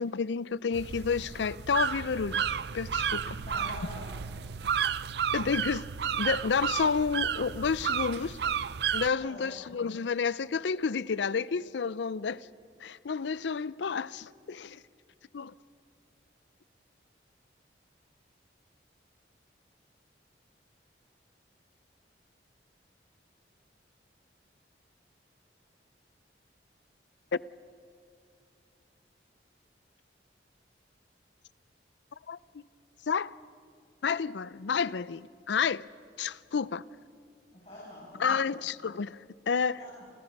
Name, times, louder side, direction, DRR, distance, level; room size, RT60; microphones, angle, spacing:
voice 1, 0.0-2.4 2.7-3.4 5.3-5.9 6.2-8.4 8.9-12.5 12.8-14.8 15.3-15.5 27.3-27.4 32.3-32.6 33.1-33.3 34.0-35.9 36.2-36.8 38.2-39.8, left 5 dB, 75° left, 0.5 m, -30 dB
sound 1, 0.7-9.1, right 7 dB, 65° right, 0.5 m, -32 dB
voice 2, 3.4-4.0 9.2-9.5 37.5-38.4 39.8-39.9, left 1 dB, 35° left, 7.3 m, -45 dB
29.5 x 28.5 x 5.3 m
head